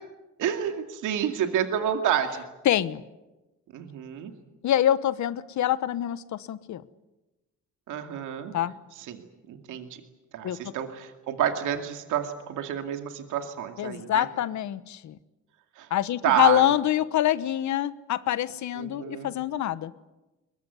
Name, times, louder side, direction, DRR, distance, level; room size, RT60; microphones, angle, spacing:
voice 1, 0.4-2.4 3.7-4.3 7.9-8.5 9.1-9.9 10.3-14.3 15.8-15.9 16.2-16.7 18.8-19.3, right 9 dB, 85° right, 6 dB, 2.4 m, -29 dB
voice 2, 2.6-3.0 4.6-6.8 8.5-8.7 10.4-10.7 13.8-15.2 15.9-19.9, left 11 dB, 70° left, 15 dB, 1.2 m, -25 dB
22.0 x 22.0 x 9.5 m, 1.1 s
cardioid pair, 90°, 30 cm